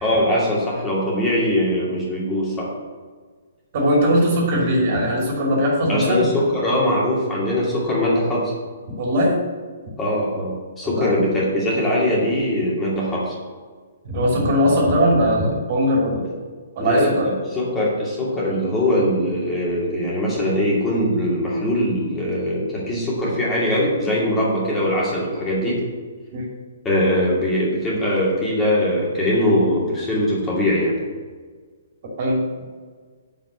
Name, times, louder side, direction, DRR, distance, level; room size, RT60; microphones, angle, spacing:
voice 1, 0.0-2.7 5.9-8.5 10.0-13.4 16.2-16.3 16.8-25.8 26.8-31.0, left 1 dB, 15° left, -6 dB, 2.5 m, -21 dB
voice 2, 3.7-6.3 9.0-9.4 10.8-11.2 14.0-16.3 16.8-17.3 26.3-26.5 32.2-32.4, equal, 45° right, -2 dB, 2.7 m, -19 dB
7.1 x 5.8 x 6.4 m, 1.5 s
figure-of-eight pair, 125°, 0 cm